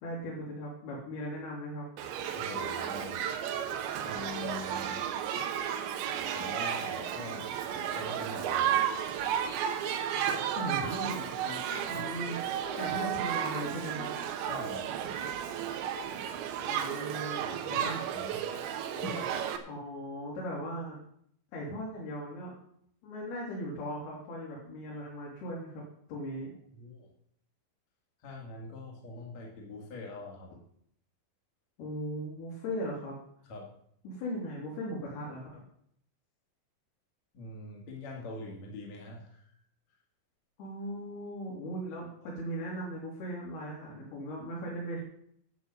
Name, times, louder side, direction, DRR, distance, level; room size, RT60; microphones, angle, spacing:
voice 1, 0.0-1.9 10.5-11.6 11.9-12.4 12.8-14.1 16.7-18.1 19.7-21.0 21.5-22.5 23.0-25.8 26.1-26.5 31.8-33.2 34.0-35.6 40.6-45.0, equal, 60° left, -5 dB, 5.1 m, -38 dB
Shout / Human group actions, 2.0-19.6, right 9 dB, 90° right, 3.4 m, -33 dB
voice 2, 2.3-3.2 4.0-5.0 6.3-7.5 7.9-9.3 11.9-12.3 14.5-15.0 17.1-17.9 18.1-18.7 19.0-19.3 26.7-27.1 28.2-30.5 33.5-33.7 37.3-39.5, left 2 dB, 45° left, -1 dB, 3.1 m, -44 dB
11.5 x 7.1 x 8.4 m, 0.67 s
omnidirectional pair, 5.1 m